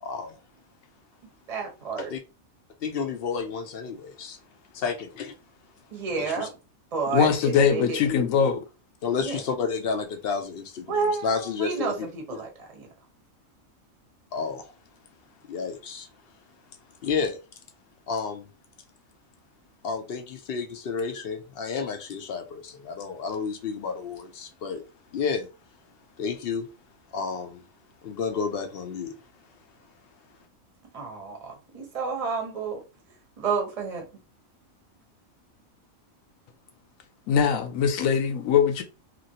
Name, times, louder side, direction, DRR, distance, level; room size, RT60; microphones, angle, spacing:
voice 1, 0.0-0.4 2.0-2.2 2.8-4.4 4.7-5.3 6.1-6.5 7.1-7.3 9.0-12.4 14.3-14.7 15.5-16.1 17.0-17.4 18.1-18.5 19.8-24.8 25.1-25.5 26.2-26.7 27.1-27.6 28.0-29.2, left 5 dB, 60° left, 0.6 m, -31 dB
voice 2, 1.5-2.1 5.9-6.5 6.9-8.1 9.2-9.4 10.9-12.9 30.9-32.8 33.4-34.0, right 5 dB, 35° right, 0.8 m, -30 dB
voice 3, 7.1-8.6 37.3-38.8, left 7 dB, 75° left, 1.0 m, -22 dB
3.0 x 2.5 x 2.7 m
omnidirectional pair, 1.4 m